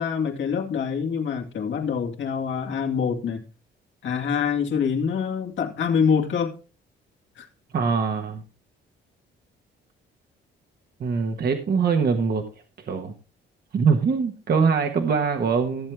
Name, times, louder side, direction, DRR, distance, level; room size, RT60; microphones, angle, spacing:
voice 1, 0.0-3.4 4.0-6.6 7.4-7.5, left 6 dB, 70° left, 2.2 m, -25 dB
voice 2, 7.7-8.4 11.0-12.5 12.8-13.1 13.7-15.9, right 5 dB, 50° right, 1.4 m, -23 dB
14.5 x 7.7 x 3.5 m
cardioid pair, 90°, 20 cm